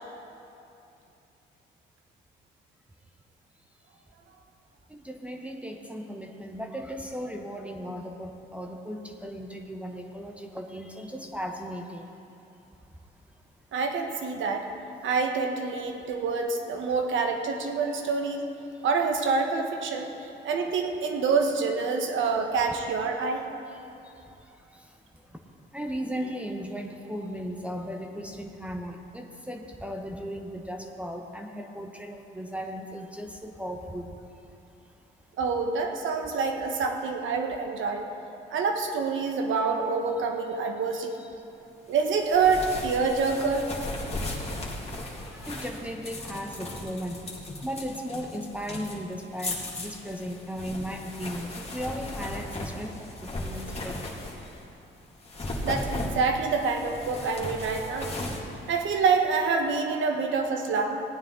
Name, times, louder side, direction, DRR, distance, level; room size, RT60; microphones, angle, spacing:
voice 1, 4.9-12.1 25.7-34.0 45.4-47.2 47.6-52.9 53.2-53.9, equal, 5° right, 2 dB, 0.9 m, -36 dB
voice 2, 13.7-14.7 15.0-18.5 18.8-20.1 20.4-23.5 35.4-38.1 38.5-41.1 41.9-43.7 55.6-58.1 58.7-61.0, right 4 dB, 75° right, 3 dB, 1.3 m, -26 dB
sound 1, 42.0-54.6 55.2-59.5, left 2 dB, 30° left, 2.1 m, -37 dB
17.0 x 9.3 x 3.8 m, 2.8 s
cardioid pair, 90°, 20 cm